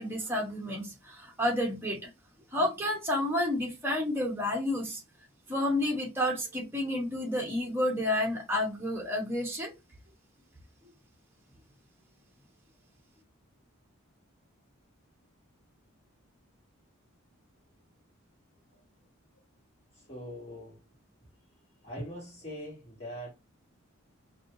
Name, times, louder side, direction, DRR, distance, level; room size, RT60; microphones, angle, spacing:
voice 1, 0.0-2.1 2.5-5.0 5.5-9.7, left 1 dB, 10° right, 1.0 m, -30 dB
voice 2, 19.9-20.8 21.8-23.3, equal, 25° left, 2.1 m, -42 dB
4.6 x 2.7 x 2.6 m
head